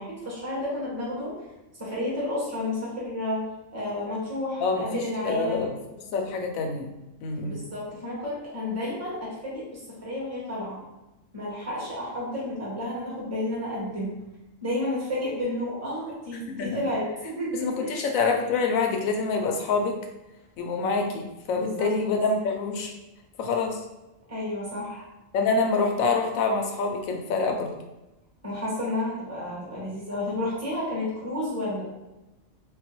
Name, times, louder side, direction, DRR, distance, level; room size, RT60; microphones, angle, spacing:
voice 1, 0.0-1.3 1.8-3.5 3.7-5.6 7.4-10.8 11.3-14.2 14.6-18.1 21.6-21.9 24.3-25.1 28.4-31.8, left 1 dB, 15° right, -6 dB, 1.0 m, -31 dB
voice 2, 4.6-5.8 6.1-6.9 7.2-7.6 16.5-16.7 17.5-20.0 20.6-22.9 23.4-23.8 25.3-27.7, left 4 dB, 85° left, 3 dB, 1.0 m, -26 dB
3.8 x 2.2 x 2.9 m, 1.0 s
omnidirectional pair, 1.4 m